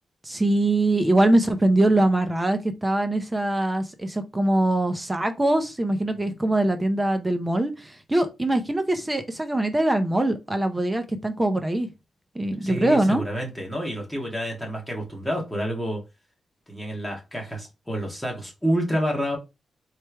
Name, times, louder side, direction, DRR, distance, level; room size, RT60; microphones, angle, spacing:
voice 1, 0.2-11.9 12.3-13.2, right 1 dB, 15° right, 0.6 m, -23 dB
voice 2, 12.6-16.0 16.7-19.4, equal, 5° left, 1.7 m, -28 dB
4.4 x 3.3 x 3.4 m
wide cardioid pair, 130°, 0 cm